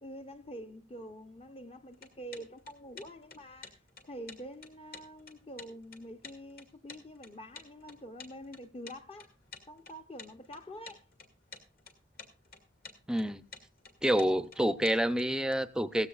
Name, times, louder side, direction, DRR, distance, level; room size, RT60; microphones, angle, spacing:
voice 1, 0.0-9.3 9.7-11.0, equal, 30° left, 0.9 m, -46 dB
sound 1, 1.9-15.5, left 4 dB, 50° left, 2.2 m, -51 dB
voice 2, 13.1-13.4 14.0-16.1, equal, 5° right, 0.6 m, -28 dB
17.0 x 15.0 x 2.5 m
head